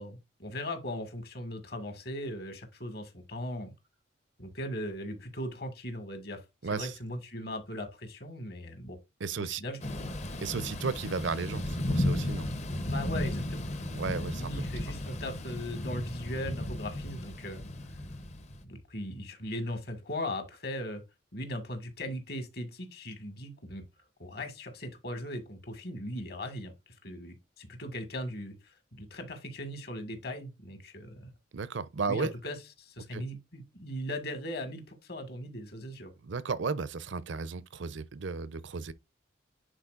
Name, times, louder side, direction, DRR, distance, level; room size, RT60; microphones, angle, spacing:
voice 1, 0.0-3.7 4.4-6.4 6.7-9.0 9.4-9.8 12.7-13.7 14.1-17.6 18.6-21.0 21.3-23.8 24.2-26.7 27.0-31.3 32.0-36.1, left 1 dB, 55° left, 1.8 m, -39 dB
voice 2, 6.6-7.0 9.2-9.6 10.4-12.5 13.9-14.5 31.5-32.3 33.1-33.2 36.2-38.9, right 4 dB, 70° right, 0.6 m, -34 dB
Thunder / Rain, 9.8-18.6, left 1 dB, 35° left, 0.8 m, -34 dB
10.0 x 4.3 x 2.5 m
head